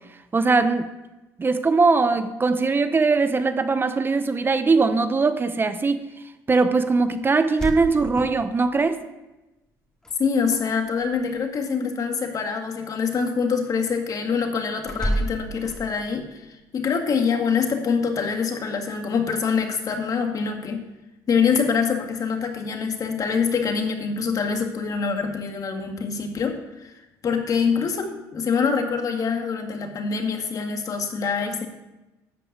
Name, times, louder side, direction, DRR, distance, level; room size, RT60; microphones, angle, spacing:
voice 1, 0.3-0.9 1.4-6.0 6.5-9.0, right 4 dB, 25° right, 10 dB, 0.8 m, -21 dB
sound 1, 7.4-8.9 10.0-10.6 10.9-11.4 14.8-16.2, equal, 10° left, 2.2 m, -30 dB
voice 2, 10.2-20.9 21.3-27.0 27.2-31.7, left 5 dB, 45° left, 4 dB, 2.0 m, -25 dB
12.0 x 5.5 x 8.2 m, 1.0 s
supercardioid pair, 90°, 8 cm